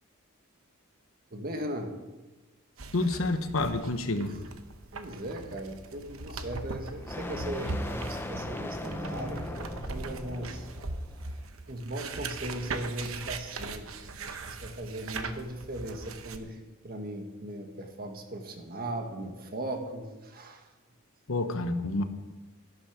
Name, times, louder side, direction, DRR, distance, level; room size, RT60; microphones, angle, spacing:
voice 1, 1.3-1.9 4.3-4.4 4.9-10.7 11.7-20.7, right 1 dB, 45° right, 4 dB, 1.6 m, -38 dB
sound 1, 2.8-16.4, right 3 dB, 80° right, 1.0 m, -40 dB
voice 2, 2.9-4.3 21.3-22.0, left 2 dB, 75° left, 9 dB, 1.0 m, -28 dB
sound 2, 6.5-11.5, left 1 dB, 10° left, 0.6 m, -39 dB
12.0 x 11.5 x 5.1 m, 1.2 s
head